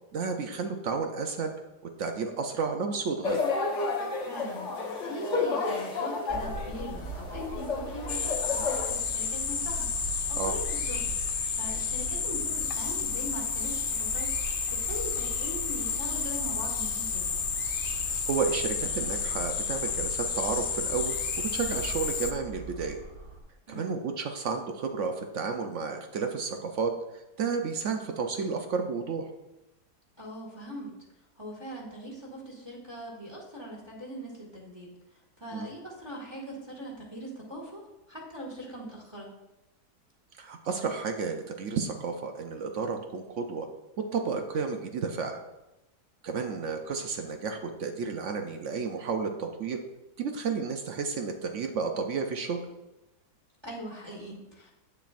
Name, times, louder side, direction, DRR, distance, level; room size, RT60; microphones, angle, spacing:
voice 1, 0.1-1.5 2.0-3.5 10.4-10.5 18.2-23.0 23.7-26.9 27.4-29.3 35.5-35.7 40.4-43.7 44.0-45.4 46.2-49.8 50.2-52.6, right 5 dB, 65° right, 5 dB, 0.8 m, -32 dB
sound 1, 3.2-8.9, left 4 dB, 50° left, 1.2 m, -31 dB
voice 2, 4.3-4.7 5.0-11.1 11.5-17.5 23.7-24.0 30.2-30.9 31.4-34.9 35.4-39.3 53.6-54.7, equal, 15° right, -2 dB, 1.7 m, -41 dB
sound 2, 6.3-23.4, right 3 dB, 20° left, 1.2 m, -43 dB
sound 3, 8.1-22.3, left 6 dB, 85° left, 0.4 m, -31 dB
8.4 x 6.7 x 2.5 m, 0.95 s
omnidirectional pair, 1.7 m